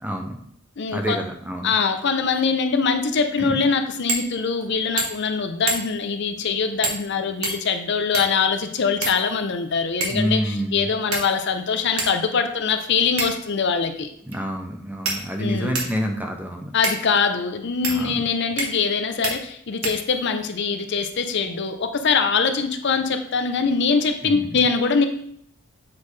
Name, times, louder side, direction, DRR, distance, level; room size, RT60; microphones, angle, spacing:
voice 1, 0.0-0.4 0.9-1.8 3.4-3.6 10.1-10.9 14.3-16.7 17.9-18.3 24.2-24.6, equal, 10° right, 3 dB, 0.5 m, -28 dB
voice 2, 0.8-1.2 1.6-14.1 15.4-15.8 16.7-25.1, left 5 dB, 55° left, 7 dB, 0.6 m, -23 dB
sound 1, 4.1-4.3 4.6-4.7 5.0-5.3 5.7-6.1 6.8-7.1 7.4-8.4 9.0-9.6 10.0-10.3 11.1-11.5 12.0-12.1 13.2-13.5 14.3-14.4 15.0-16.0 16.8-17.0 17.8-18.0 18.6-18.9 19.2-19.4 19.8-20.4, right 3 dB, 85° right, 1.4 m, -28 dB
7.3 x 4.2 x 3.2 m, 0.67 s
head